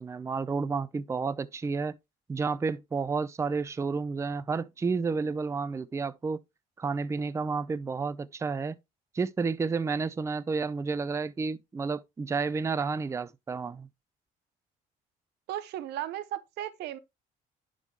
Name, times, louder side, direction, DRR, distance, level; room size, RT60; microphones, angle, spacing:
voice 1, 0.0-2.0 2.3-6.4 6.8-8.7 9.1-13.9, right 4 dB, 15° right, 0.4 m, -31 dB
voice 2, 15.5-17.0, right 12 dB, 80° right, 0.8 m, -35 dB
11.0 x 3.8 x 3.2 m
cardioid pair, 110°, 17 cm